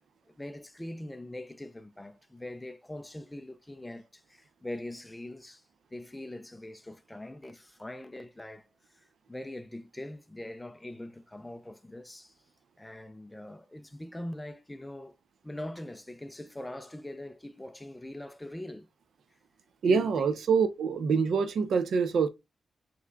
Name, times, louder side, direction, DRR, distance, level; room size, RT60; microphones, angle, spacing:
voice 1, 0.4-5.6 5.9-8.7 8.9-12.3 12.8-15.2 15.4-18.9 19.9-20.3, left 1 dB, 10° left, 0.4 m, -42 dB
voice 2, 19.8-22.3, right 5 dB, 70° right, 0.6 m, -25 dB
5.7 x 3.1 x 2.3 m
wide cardioid pair, 170°, 0 cm